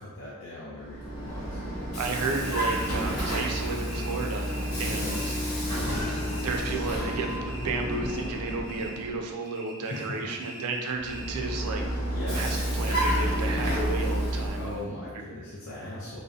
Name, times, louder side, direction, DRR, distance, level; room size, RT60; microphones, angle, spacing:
voice 1, 0.0-1.7 4.9-5.2 9.9-10.4 12.1-12.7 14.5-16.2, left 1 dB, 55° left, -6 dB, 0.4 m, -39 dB
Vehicle, 0.8-9.3 11.0-14.9, equal, 85° left, 0.8 m, -30 dB
voice 2, 2.0-5.2 6.4-12.0 12.3-14.9, right 3 dB, 90° right, 3 dB, 0.4 m, -33 dB
sound 1, 2.3-5.6 5.9-6.8 7.1-9.1 9.4-11.5, right 1 dB, 20° left, 0.7 m, -45 dB
2.6 x 2.1 x 2.3 m, 1.3 s
head